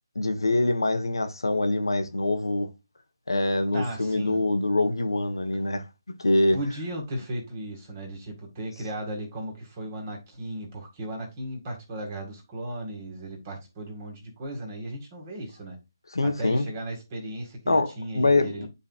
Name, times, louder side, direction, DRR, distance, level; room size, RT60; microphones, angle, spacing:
voice 1, 0.1-2.7 3.3-5.8 6.2-6.6 16.1-16.7 17.7-18.7, left 2 dB, 80° left, 1.2 m, -24 dB
voice 2, 3.7-4.4 6.5-15.8 16.2-18.7, right 1 dB, 30° right, 1.9 m, -36 dB
10.0 x 4.0 x 2.4 m
figure-of-eight pair, 155°, 2 cm